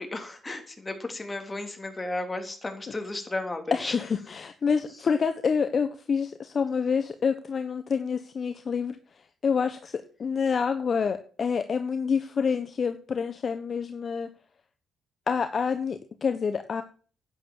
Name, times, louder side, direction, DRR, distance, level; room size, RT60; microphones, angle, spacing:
voice 1, 0.0-4.0, left 2 dB, 20° left, 5 dB, 3.4 m, -34 dB
voice 2, 3.7-9.0 9.4-14.3 15.3-16.8, left 6 dB, 45° left, 9 dB, 1.1 m, -27 dB
10.5 x 9.6 x 7.4 m, 0.41 s
cardioid pair, 90°, 0 cm